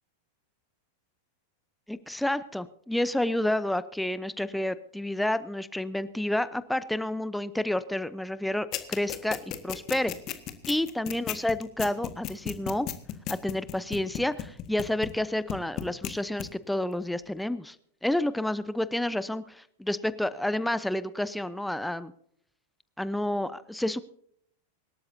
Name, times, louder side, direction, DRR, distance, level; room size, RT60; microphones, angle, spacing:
voice 1, 1.9-9.4 9.6-10.1 10.7-12.9 13.3-17.8 18.0-22.1 23.0-24.0, left 1 dB, 5° left, 15 dB, 0.7 m, -29 dB
sound 1, 8.7-15.2 15.5-16.1 16.4-16.5, left 13 dB, 35° left, 1.6 m, -33 dB
25.0 x 13.0 x 2.7 m, 0.67 s
figure-of-eight pair, 90°, 0 cm